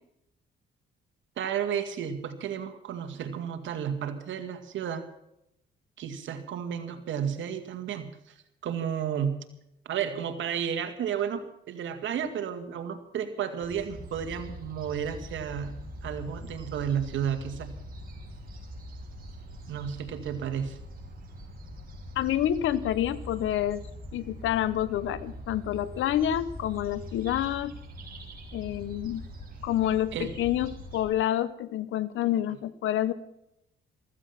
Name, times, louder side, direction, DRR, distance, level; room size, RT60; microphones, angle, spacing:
voice 1, 1.4-5.1 6.0-8.3 8.6-9.4 9.9-15.8 16.0-17.8 19.7-20.8 30.1-30.3, right 8 dB, 75° right, 7 dB, 2.1 m, -32 dB
sound 1, 13.6-31.0, equal, 45° right, 5.3 m, -43 dB
voice 2, 22.2-23.8 24.1-27.7 28.5-29.2 29.6-33.1, left 12 dB, 80° left, 17 dB, 1.0 m, -28 dB
15.0 x 15.0 x 5.9 m, 0.80 s
cardioid pair, 90°, 20 cm